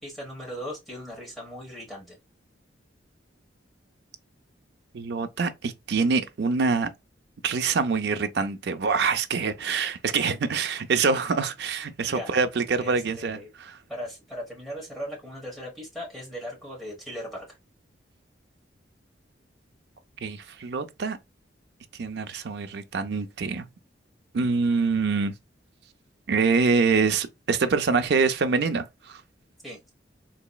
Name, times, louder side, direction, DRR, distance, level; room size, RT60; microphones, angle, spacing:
voice 1, 0.0-2.2 12.1-12.4 12.8-13.5 13.9-17.5 29.6-29.8, equal, ahead, 1.1 m, -38 dB
voice 2, 4.9-6.9 7.4-13.8 20.2-21.2 22.0-23.7 24.3-25.3 26.3-29.2, right 4 dB, 60° right, 0.4 m, -25 dB
3.9 x 2.9 x 2.2 m
head